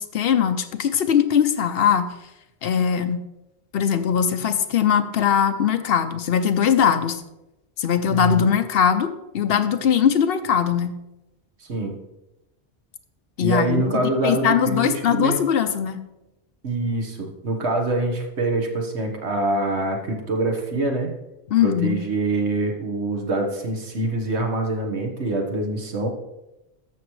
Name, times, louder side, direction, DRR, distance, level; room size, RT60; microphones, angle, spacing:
voice 1, 0.0-2.1 2.6-3.2 3.7-7.2 7.8-11.0 13.4-16.0 21.5-22.0, left 8 dB, 65° left, 9 dB, 0.8 m, -21 dB
voice 2, 8.1-8.5 11.6-12.0 13.4-15.4 16.6-21.1 21.6-26.1, right 2 dB, 75° right, 3 dB, 1.6 m, -25 dB
13.0 x 6.1 x 3.1 m, 0.94 s
omnidirectional pair, 1.1 m